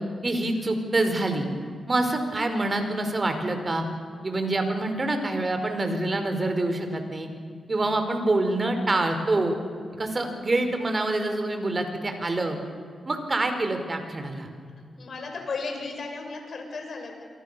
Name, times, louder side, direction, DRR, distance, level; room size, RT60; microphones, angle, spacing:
voice 1, 0.2-1.5 1.9-3.8 4.2-7.3 7.7-9.5 10.0-12.6 13.0-14.5, right 2 dB, 40° right, 6 dB, 5.1 m, -26 dB
voice 2, 15.0-17.1, left 4 dB, 65° left, 3 dB, 6.7 m, -34 dB
28.0 x 23.5 x 7.0 m, 2.2 s
supercardioid pair, 50°, 0 cm